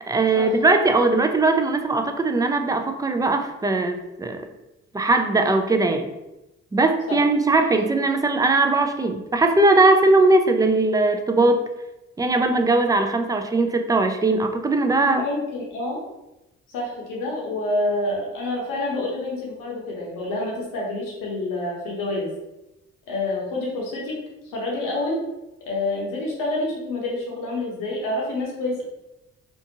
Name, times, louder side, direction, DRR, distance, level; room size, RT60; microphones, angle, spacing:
voice 1, 0.1-4.4 4.9-6.1 6.7-11.7 12.2-15.3, right 2 dB, 10° right, 6 dB, 0.3 m, -20 dB
voice 2, 14.9-16.0 16.7-22.3 23.1-24.2 24.4-25.2 25.7-28.8, left 2 dB, 85° left, -2 dB, 0.8 m, -28 dB
2.6 x 2.4 x 2.7 m, 0.96 s
supercardioid pair, 50°, 32 cm